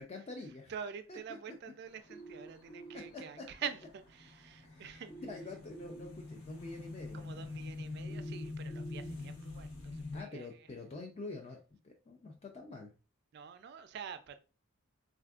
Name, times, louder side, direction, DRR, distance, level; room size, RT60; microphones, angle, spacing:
voice 1, 0.0-0.7 1.1-1.2 3.1-3.4 4.6-7.5 10.1-11.6 11.8-12.9, left 3 dB, 30° left, 0.3 m, -46 dB
voice 2, 0.7-5.1 7.1-10.7 13.3-14.4, right 7 dB, 55° right, 0.3 m, -46 dB
sound 1, 1.9-10.2, left 3 dB, 90° left, 0.9 m, -45 dB
sound 2, 2.1-3.1 5.1-6.1 8.1-9.1, right 3 dB, 65° left, 1.0 m, -49 dB
3.4 x 2.4 x 2.3 m
head